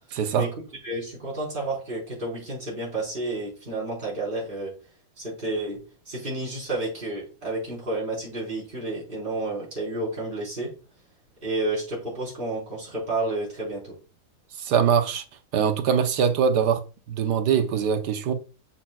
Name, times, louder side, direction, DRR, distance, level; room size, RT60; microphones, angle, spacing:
voice 1, 0.1-0.5 14.6-15.2 15.5-16.8 17.1-18.3, right 7 dB, 90° right, 1.5 m, -22 dB
voice 2, 0.8-4.7 5.2-5.8 6.1-10.7 11.4-13.9, right 2 dB, 30° right, 4.7 m, -30 dB
8.5 x 7.7 x 2.3 m
omnidirectional pair, 1.7 m